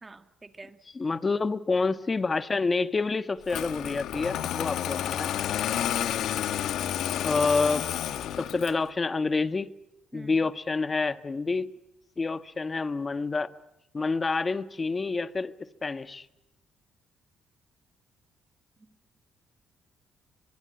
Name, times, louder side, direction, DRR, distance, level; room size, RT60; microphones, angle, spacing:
voice 1, 0.0-0.8 5.6-6.0 10.1-10.5, right 3 dB, 25° right, 9 dB, 2.1 m, -47 dB
voice 2, 0.9-5.3 7.2-7.9 8.4-9.7 10.1-11.7 12.2-13.5 13.9-16.2, left 4 dB, 30° left, 12 dB, 1.3 m, -28 dB
Engine starting, 3.5-8.9, left 11 dB, 80° left, 1.3 m, -30 dB
24.0 x 23.5 x 8.9 m, 0.91 s
cardioid pair, 90°, 0 cm